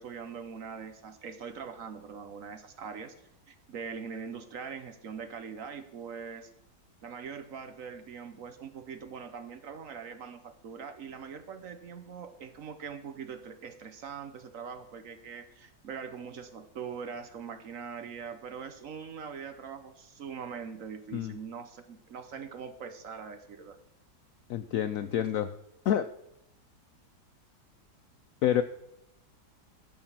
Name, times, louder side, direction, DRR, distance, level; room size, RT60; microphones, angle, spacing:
voice 1, 0.0-3.1 3.5-6.5 7.0-23.8, right 6 dB, 55° right, 9 dB, 1.1 m, -42 dB
voice 2, 24.5-25.5 25.8-26.1 28.4-28.6, left 10 dB, 75° left, 12 dB, 0.7 m, -28 dB
12.5 x 6.0 x 7.3 m, 0.83 s
omnidirectional pair, 1.9 m